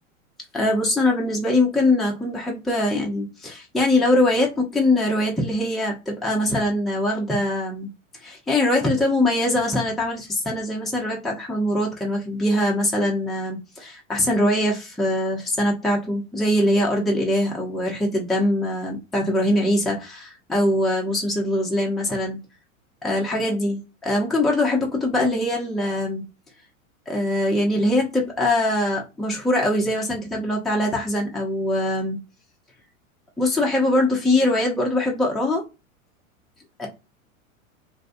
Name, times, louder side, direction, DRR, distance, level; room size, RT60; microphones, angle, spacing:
voice 1, 0.5-7.9 8.2-22.4 23.0-26.2 27.1-32.2 33.4-35.6 36.8-36.9, left 1 dB, ahead, -2 dB, 0.5 m, -22 dB
2.6 x 2.2 x 2.5 m, 0.27 s
hypercardioid pair, 100°, 42 cm